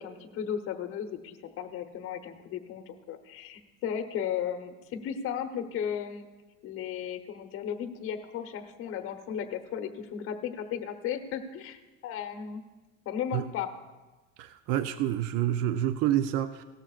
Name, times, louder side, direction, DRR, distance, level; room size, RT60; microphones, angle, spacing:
voice 1, 0.0-6.3 6.6-12.6 13.0-13.7, left 8 dB, 45° left, 6 dB, 1.0 m, -35 dB
voice 2, 14.4-16.6, right 12 dB, 60° right, 11 dB, 0.5 m, -28 dB
17.5 x 13.5 x 2.4 m, 1.2 s
cardioid pair, 165°, 29 cm